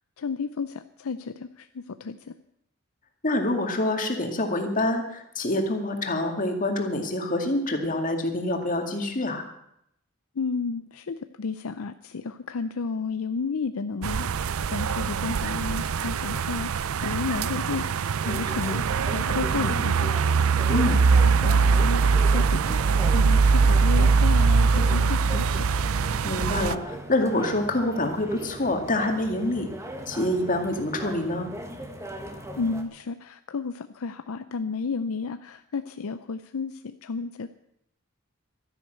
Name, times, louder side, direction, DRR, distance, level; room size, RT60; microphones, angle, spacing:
voice 1, 0.2-2.2 10.4-20.1 20.7-25.7 32.6-37.5, left 4 dB, 70° left, 10 dB, 0.5 m, -32 dB
voice 2, 3.2-9.4 20.7-21.0 26.2-29.7 30.1-31.5, left 1 dB, 35° left, 4 dB, 2.2 m, -26 dB
sound 1, 14.0-26.8, right 5 dB, 70° right, 0.5 m, -22 dB
sound 2, 18.2-32.8, equal, 15° right, 1.5 m, -39 dB
13.0 x 11.0 x 8.0 m, 0.78 s
head